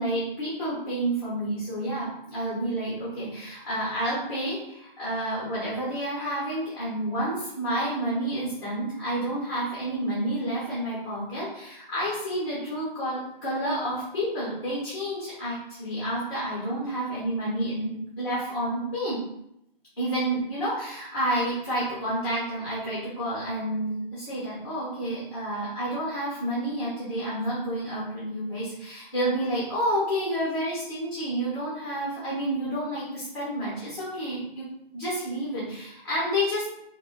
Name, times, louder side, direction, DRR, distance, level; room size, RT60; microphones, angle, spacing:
voice 1, 0.0-19.2 20.0-34.6 34.9-36.7, right 1 dB, 25° left, -8 dB, 1.0 m, -29 dB
5.2 x 2.2 x 2.3 m, 0.79 s
hypercardioid pair, 170°, 30 cm